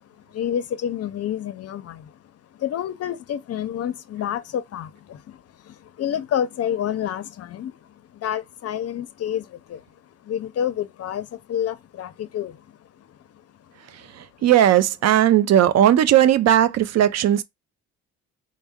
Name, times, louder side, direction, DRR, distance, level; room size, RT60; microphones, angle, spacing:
voice 1, 0.3-2.2 2.5-9.8 10.2-13.1 13.6-13.7 14.0-14.1, left 9 dB, 55° left, 0.6 m, -29 dB
voice 2, 14.2-17.4, right 11 dB, 60° right, 0.5 m, -17 dB
4.2 x 2.1 x 3.5 m
cardioid pair, 90°, 30 cm